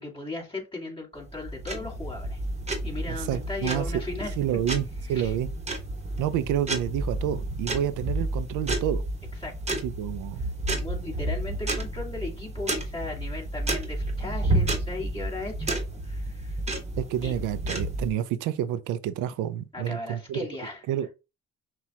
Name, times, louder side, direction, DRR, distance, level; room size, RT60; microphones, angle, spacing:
voice 1, 0.0-2.4 2.8-4.4 5.1-5.3 9.4-9.8 10.7-16.6 17.2-17.3 19.7-20.8, left 2 dB, 15° left, 1.9 m, -37 dB
sound 1, 1.2-18.1, right 1 dB, 20° right, 1.1 m, -31 dB
voice 2, 3.1-3.9 4.4-5.5 6.2-9.0 9.8-10.4 17.0-20.5 20.9-21.1, right 11 dB, 90° right, 0.5 m, -29 dB
5.8 x 2.4 x 2.8 m
cardioid pair, 90°, 30 cm